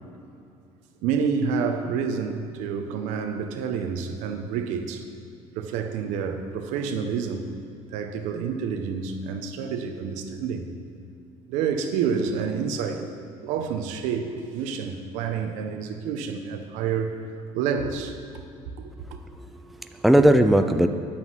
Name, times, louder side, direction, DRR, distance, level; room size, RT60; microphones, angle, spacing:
voice 1, 1.0-5.0 5.5-7.5 7.9-10.7 11.5-13.1 13.4-17.2 17.5-18.3 18.8-19.2 20.2-20.3, right 6 dB, 80° right, 1.2 m, -28 dB
voice 2, 19.1-20.9, right 1 dB, ahead, 0.5 m, -20 dB
10.5 x 8.8 x 7.5 m
cardioid pair, 140°, 12 cm